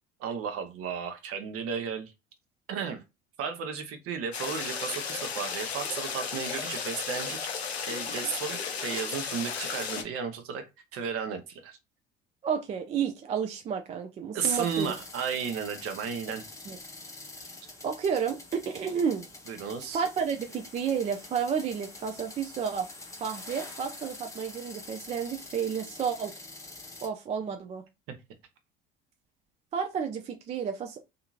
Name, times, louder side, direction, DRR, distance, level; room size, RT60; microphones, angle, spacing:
voice 1, 0.2-2.1 2.7-3.0 3.4-7.4 7.9-10.6 10.9-11.8 14.3-16.5 17.4-17.5 19.5-20.0, right 6 dB, 45° right, 0.7 m, -34 dB
sound 1, 4.3-10.0, left 6 dB, 85° left, 0.5 m, -34 dB
voice 2, 12.4-14.9 16.7-16.8 17.8-19.3 19.9-22.9 23.2-26.3 27.0-27.8 29.7-31.0, right 7 dB, 25° right, 0.3 m, -31 dB
sound 2, 14.4-27.1, left 2 dB, 10° left, 0.7 m, -46 dB
2.7 x 2.6 x 2.4 m
figure-of-eight pair, 60°, 31 cm